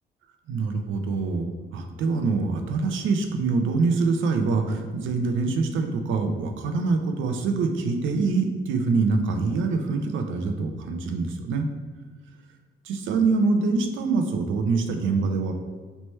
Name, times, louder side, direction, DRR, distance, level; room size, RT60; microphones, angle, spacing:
voice 1, 0.5-11.7 12.8-15.5, right 4 dB, 80° right, 5 dB, 0.6 m, -25 dB
3.3 x 3.0 x 4.3 m, 1.4 s
cardioid pair, 90°, 20 cm